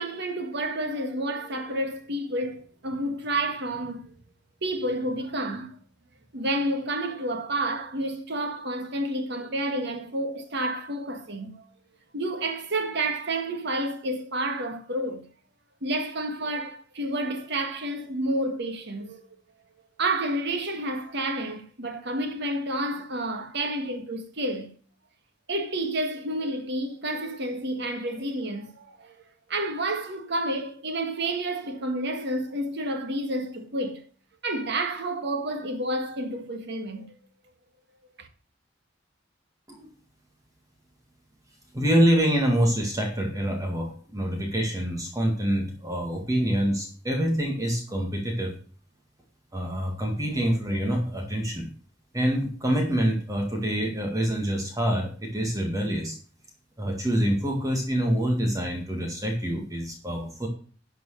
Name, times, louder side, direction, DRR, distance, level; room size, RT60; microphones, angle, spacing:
voice 1, 0.0-4.1 4.6-5.8 6.3-11.6 12.1-15.2 15.8-19.2 20.0-24.7 25.5-29.2 29.5-34.0 34.4-37.1 38.2-38.3, right 1 dB, 60° right, 1.6 m, -30 dB
voice 2, 41.7-48.5 49.5-51.7 52.1-56.2 56.8-60.5, equal, 20° right, 1.8 m, -26 dB
11.5 x 4.7 x 6.4 m
head